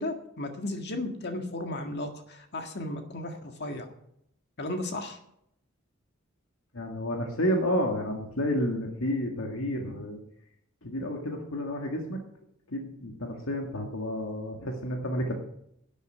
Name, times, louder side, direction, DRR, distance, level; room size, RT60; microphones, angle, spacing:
voice 1, 0.0-3.9 4.6-5.2, left 1 dB, 55° left, 5 dB, 1.8 m, -35 dB
voice 2, 6.7-10.2 10.8-12.2 12.7-15.3, equal, 85° left, 2 dB, 1.9 m, -30 dB
12.0 x 8.2 x 7.9 m, 0.74 s
head